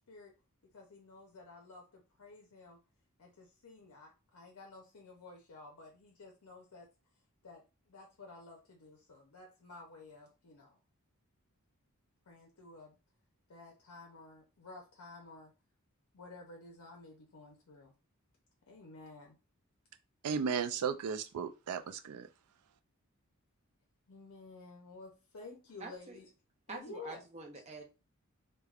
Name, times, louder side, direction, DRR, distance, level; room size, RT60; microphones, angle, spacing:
voice 1, 0.7-2.8 3.2-6.9 7.4-10.8 12.3-13.0 13.5-15.5 16.1-17.9 18.7-19.4 24.1-26.3 26.7-27.2, left 3 dB, 70° left, 0.6 m, -52 dB
voice 2, 20.2-22.3, right 6 dB, 85° right, 0.4 m, -35 dB
voice 3, 25.8-26.2 26.7-27.8, right 3 dB, 30° right, 0.6 m, -46 dB
3.3 x 2.2 x 2.4 m
head